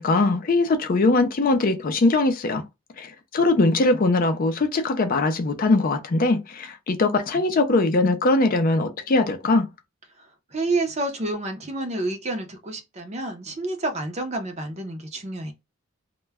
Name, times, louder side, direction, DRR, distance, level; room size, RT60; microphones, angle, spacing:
voice 1, 0.0-2.6 3.0-9.7, left 2 dB, 45° left, 0.4 m, -21 dB
voice 2, 10.5-15.5, right 2 dB, 30° right, 0.6 m, -29 dB
2.2 x 2.1 x 3.3 m
head